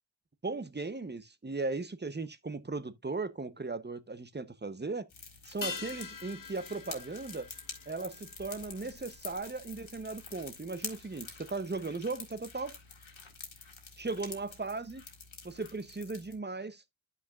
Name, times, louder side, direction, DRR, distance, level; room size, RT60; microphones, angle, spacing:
voice 1, 0.4-5.1 5.5-7.5 7.9-12.8 14.0-15.0 15.4-16.8, right 3 dB, 20° right, 0.8 m, -37 dB
sound 1, 5.1-16.4, left 4 dB, 75° left, 1.9 m, -48 dB
sound 2, 5.6-10.3 10.6-10.7, left 4 dB, 45° left, 0.9 m, -45 dB
10.5 x 5.8 x 2.4 m
wide cardioid pair, 65°, 47 cm